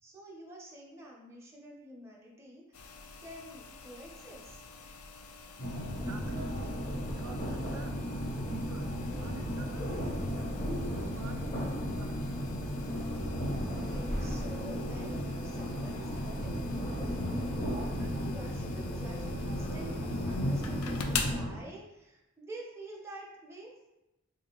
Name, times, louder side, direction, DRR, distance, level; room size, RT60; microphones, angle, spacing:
voice 1, 0.0-2.9 3.2-4.6 8.8-9.2 13.6-23.7, right 1 dB, 10° right, -3 dB, 0.5 m, -49 dB
sound 1, 2.7-21.4, left 5 dB, 85° left, 0.4 m, -45 dB
sound 2, 5.6-21.6, equal, 35° left, 0.6 m, -34 dB
voice 2, 6.0-10.0 10.4-10.6 10.9-11.5 11.8-12.5, right 4 dB, 85° right, 5 dB, 0.4 m, -48 dB
3.6 x 2.4 x 2.8 m, 0.95 s
head